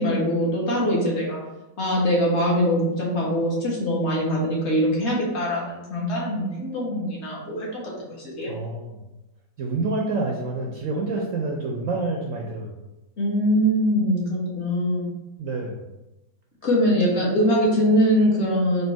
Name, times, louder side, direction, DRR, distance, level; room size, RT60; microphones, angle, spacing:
voice 1, 0.0-1.4 1.8-8.5 13.2-15.1 16.6-18.8, equal, 40° left, -4 dB, 1.5 m, -22 dB
voice 2, 8.5-9.0 9.6-12.8 15.4-15.8, right 3 dB, 65° right, -1 dB, 0.8 m, -28 dB
4.4 x 2.7 x 4.5 m, 0.97 s
omnidirectional pair, 1.9 m